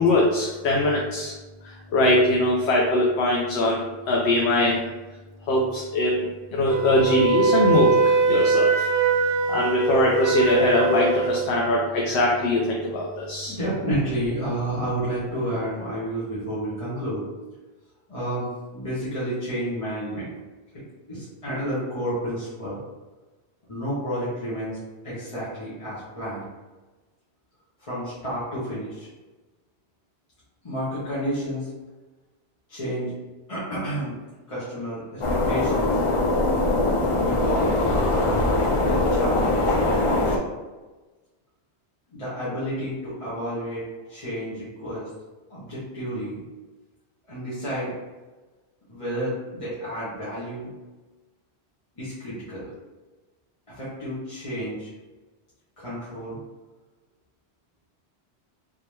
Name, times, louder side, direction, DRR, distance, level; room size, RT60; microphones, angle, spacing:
voice 1, 0.0-1.3 1.9-3.8 4.1-4.8 5.5-8.9 9.5-13.6, left 1 dB, 75° left, -2 dB, 0.9 m, -22 dB
Wind instrument woodwind instrument, 6.7-11.4, right 4 dB, 70° right, 0.8 m, -22 dB
voice 2, 13.5-17.3 18.1-20.3 21.1-22.8 23.7-24.8 25.0-26.5 27.8-29.1 30.6-31.7 32.7-33.1 33.5-34.1 34.5-36.0 37.2-37.8 38.4-40.4 42.1-45.1 45.5-46.4 47.3-47.9 48.9-50.7 52.0-52.7 53.7-54.9 55.8-56.4, equal, 30° left, -11 dB, 1.2 m, -30 dB
sound 1, 35.2-40.4, left 2 dB, 55° left, 0.3 m, -22 dB
3.7 x 2.8 x 3.2 m, 1.2 s
omnidirectional pair, 1.1 m